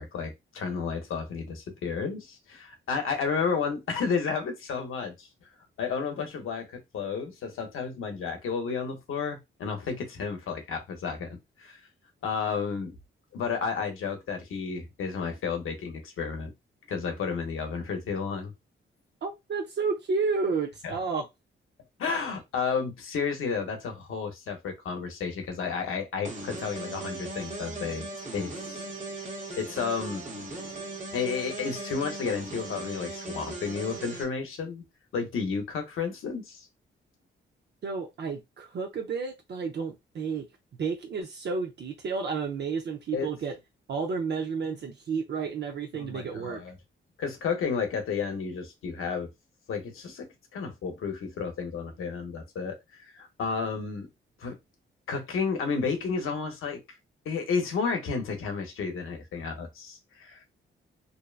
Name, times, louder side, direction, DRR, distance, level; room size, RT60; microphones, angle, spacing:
voice 1, 0.0-5.3 5.8-11.8 12.2-13.0 13.3-16.5 16.9-18.5 20.8-20.9 22.0-28.0 28.3-28.9 29.2-29.3 29.6-30.2 31.1-34.8 35.1-36.7 43.1-43.3 45.9-46.7 47.2-49.3 49.7-54.1 54.4-54.6 55.1-56.8 57.2-60.4, left 5 dB, 80° left, 0.8 m, -32 dB
voice 2, 19.2-21.3 37.8-40.5 40.8-43.6 43.9-46.6, right 5 dB, 55° right, 0.5 m, -31 dB
sound 1, 26.2-34.2, right 2 dB, 40° right, 0.9 m, -38 dB
2.7 x 2.1 x 2.3 m
cardioid pair, 90°, 21 cm